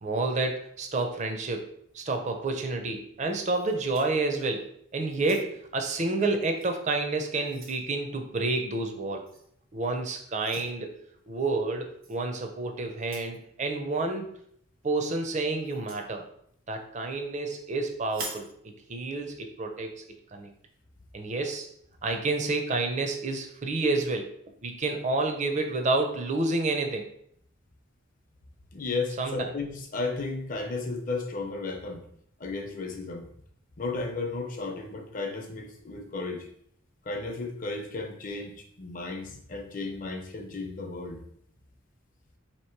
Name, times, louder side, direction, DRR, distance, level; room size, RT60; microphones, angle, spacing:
voice 1, 0.0-1.7 1.9-9.2 9.7-10.9 11.3-14.3 14.8-16.2 16.7-18.5 18.9-19.9 20.3-20.5 21.1-21.7 22.0-24.3 24.6-27.1 29.2-29.5, right 3 dB, 35° right, 4 dB, 0.5 m, -29 dB
sound 1, 3.5-4.7 5.1-5.8 6.6-6.7 7.2-7.9 9.3-9.5 10.4-10.7 12.0-12.2 13.0-13.4 15.6-16.1 18.0-18.5, right 3 dB, 90° right, 1.0 m, -44 dB
voice 2, 28.7-32.0 32.4-33.3 33.8-36.5 37.1-41.2, left 3 dB, 40° left, 3 dB, 0.6 m, -34 dB
3.0 x 2.9 x 4.5 m, 0.69 s
head